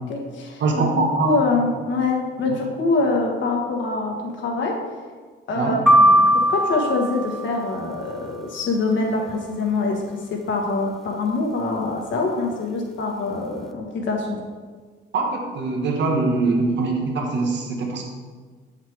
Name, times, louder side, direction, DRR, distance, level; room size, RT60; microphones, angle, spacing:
voice 1, 0.1-0.9 1.2-4.7 5.5-14.4, left 3 dB, 70° left, 0 dB, 1.7 m, -24 dB
voice 2, 0.6-1.3 5.5-5.8 15.1-18.0, right 3 dB, 65° right, 1 dB, 1.5 m, -22 dB
sound 1, 5.9-8.0, equal, ahead, 0.6 m, -18 dB
7.6 x 6.6 x 3.6 m, 1.5 s
cardioid pair, 90°, 20 cm